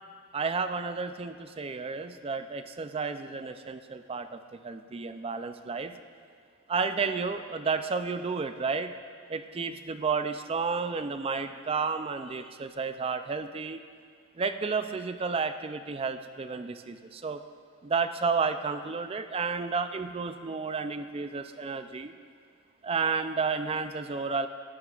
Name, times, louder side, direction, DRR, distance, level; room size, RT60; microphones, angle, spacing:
voice 1, 0.3-5.9 6.7-8.9 9.3-13.8 14.4-17.4 17.8-22.1 22.8-24.5, right 5 dB, 25° right, 9 dB, 0.4 m, -31 dB
17.5 x 11.0 x 2.4 m, 2.1 s
head